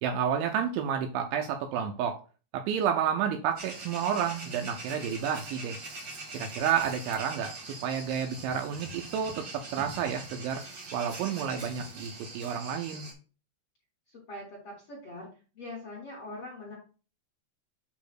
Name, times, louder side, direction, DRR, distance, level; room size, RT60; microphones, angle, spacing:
voice 1, 0.0-2.2 2.5-5.8 6.3-10.6 10.9-13.1, right 8 dB, 80° right, 5 dB, 2.9 m, -30 dB
sound 1, 3.6-13.1, right 2 dB, 50° right, 1.6 m, -43 dB
voice 2, 14.1-15.3 15.5-16.8, left 2 dB, 45° left, -4 dB, 2.0 m, -42 dB
8.5 x 3.1 x 6.0 m, 0.35 s
omnidirectional pair, 5.9 m